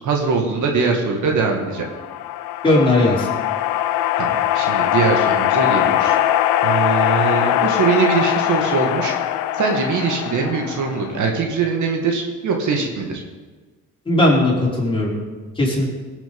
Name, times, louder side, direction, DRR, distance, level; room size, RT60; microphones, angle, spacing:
voice 1, 0.0-1.9 4.2-6.2 6.6-9.1 9.5-13.2, right 5 dB, 60° right, 2 dB, 2.2 m, -22 dB
sound 1, 1.7-11.3, left 12 dB, 85° left, 0.8 m, -21 dB
voice 2, 2.6-3.3 14.1-15.2 15.6-15.9, left 1 dB, 15° left, -5 dB, 4.7 m, -17 dB
17.5 x 7.5 x 5.5 m, 1.4 s
supercardioid pair, 85°, 33 cm